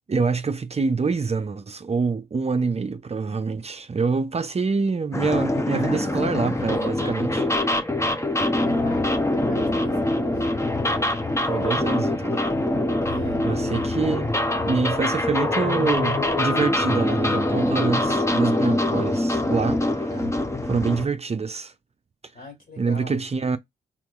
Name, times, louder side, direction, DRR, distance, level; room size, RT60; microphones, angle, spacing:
voice 1, 0.1-7.4 11.5-12.4 13.4-14.3 14.6-20.1 20.7-21.7 22.8-23.6, right 4 dB, 35° right, 0.6 m, -26 dB
sound 1, 5.1-21.1, left 1 dB, 15° left, 0.9 m, -24 dB
voice 2, 5.7-7.2 8.6-10.5 13.0-13.4 20.1-20.4 22.3-23.2, left 2 dB, 55° left, 2.9 m, -40 dB
4.5 x 3.7 x 2.5 m
cardioid pair, 55°, 18 cm